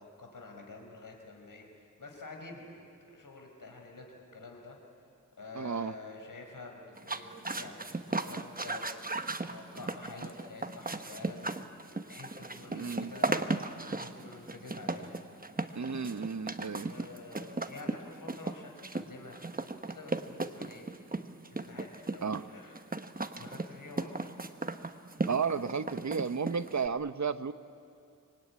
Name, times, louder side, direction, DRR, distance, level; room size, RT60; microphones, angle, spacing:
voice 1, 0.0-4.8 5.4-8.9 9.2-15.2 15.9-16.2 16.9-20.9 21.5-22.8 23.4-24.3, left 3 dB, 80° left, 2 dB, 4.8 m, -48 dB
voice 2, 5.5-5.9 12.7-13.1 15.7-16.9 22.2-22.4 25.3-27.5, right 5 dB, 60° right, 12 dB, 1.0 m, -33 dB
sound 1, 7.0-26.9, right 3 dB, 25° right, 1.1 m, -36 dB
25.0 x 23.0 x 9.8 m, 2.5 s
wide cardioid pair, 80°, 32 cm